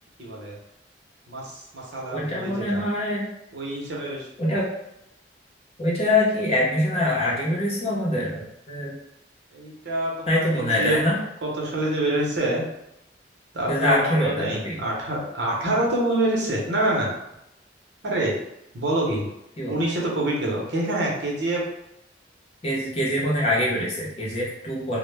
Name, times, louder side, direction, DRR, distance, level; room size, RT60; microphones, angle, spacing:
voice 1, 0.2-0.5 1.3-2.8 3.5-4.3 9.5-11.0 11.4-12.7 13.5-17.1 18.0-18.3 18.7-19.2 19.7-21.6, right 1 dB, 75° right, -3 dB, 0.7 m, -26 dB
voice 2, 2.1-3.2 4.4-4.7 5.8-8.9 10.3-11.2 13.7-14.8 19.6-19.8 22.6-25.0, left 1 dB, 35° left, -5 dB, 0.6 m, -24 dB
2.1 x 2.1 x 3.2 m, 0.85 s
head